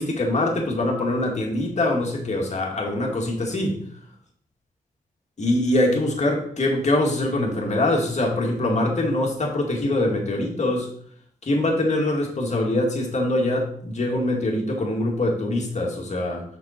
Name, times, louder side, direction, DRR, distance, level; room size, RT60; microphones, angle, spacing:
voice 1, 0.0-3.8 5.4-10.9 11.4-16.4, left 1 dB, 50° left, 0 dB, 2.4 m, -23 dB
6.5 x 5.9 x 4.5 m, 0.62 s
cardioid pair, 65°, 15 cm